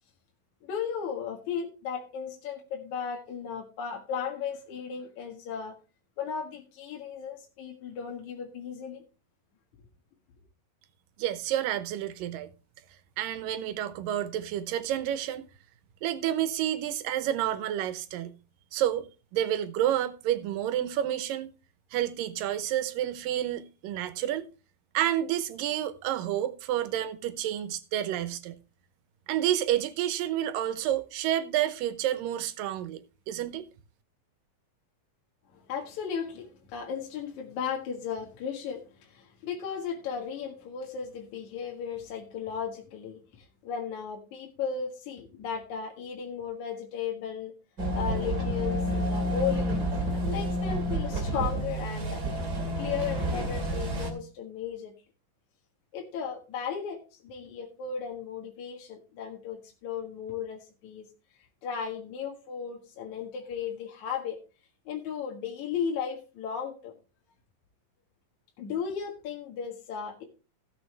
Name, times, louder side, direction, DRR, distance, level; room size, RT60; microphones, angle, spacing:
voice 1, 0.6-5.8 6.2-9.0 35.5-47.5 47.9-54.9 55.9-61.1 61.6-64.4 64.9-66.9 68.6-70.2, left 7 dB, 65° left, 3.0 m, -35 dB
voice 2, 11.2-12.5 13.2-15.4 16.0-18.3 18.7-19.1 19.3-21.5 21.9-24.5 24.9-28.6 29.3-33.0 33.3-33.7, right 11 dB, 85° right, 2.6 m, -29 dB
sound 1, 47.8-54.1, equal, 30° right, 2.5 m, -29 dB
16.0 x 7.1 x 3.3 m
omnidirectional pair, 3.8 m